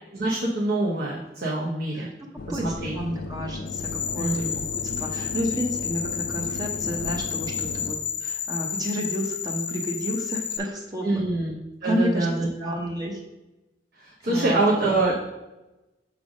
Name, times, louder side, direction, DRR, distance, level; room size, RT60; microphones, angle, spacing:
voice 1, 0.1-2.1 2.5-2.9 4.2-4.6 11.0-11.5 11.8-12.7 14.0-15.2, right 2 dB, 60° right, -4 dB, 0.9 m, -25 dB
voice 2, 1.9-11.3 11.8-12.3 12.6-13.2 14.2-14.6, equal, 20° right, 0 dB, 0.7 m, -31 dB
sound 1, 2.4-7.9, left 2 dB, 50° left, 0.4 m, -36 dB
sound 2, 3.7-10.6, left 7 dB, 75° left, 1.0 m, -31 dB
6.2 x 3.3 x 5.1 m, 1.0 s
head